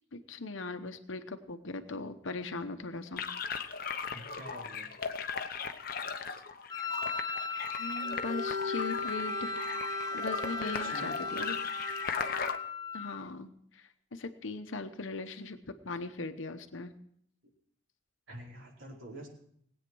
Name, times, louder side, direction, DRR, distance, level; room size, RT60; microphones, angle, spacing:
voice 1, 0.1-3.3 7.8-9.6 10.1-11.6 12.9-15.6 15.8-16.9, left 3 dB, 80° left, 8 dB, 1.0 m, -39 dB
sound 1, 3.2-12.6, left 5 dB, 45° left, 0.9 m, -38 dB
voice 2, 4.1-4.9 10.8-11.1 18.3-19.3, right 1 dB, 90° right, -3 dB, 4.8 m, -46 dB
Wind instrument woodwind instrument, 6.7-13.3, left 5 dB, 20° left, 0.5 m, -37 dB
Bowed string instrument, 8.0-12.5, equal, 40° right, 0.9 m, -40 dB
19.0 x 8.9 x 6.2 m, 0.67 s
head